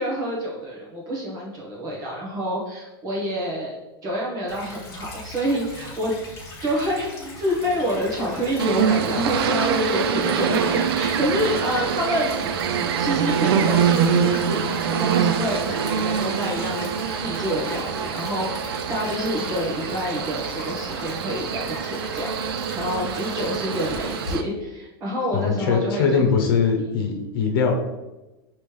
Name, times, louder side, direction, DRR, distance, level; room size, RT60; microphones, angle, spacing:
voice 1, 0.0-3.8 4.0-6.2 6.6-7.1 7.4-12.4 13.0-26.3, equal, 30° right, -4 dB, 1.0 m, -27 dB
Stream / Trickle dribble, 4.5-24.3, left 2 dB, 25° left, 1.2 m, -40 dB
sound 1, 7.0-17.8, right 4 dB, ahead, 1.2 m, -37 dB
sound 2, 8.6-24.4, right 7 dB, 85° right, 0.4 m, -25 dB
voice 2, 25.3-27.8, left 5 dB, 70° left, 2 dB, 0.9 m, -21 dB
5.3 x 3.0 x 3.2 m, 1.1 s
supercardioid pair, 150°, 12 cm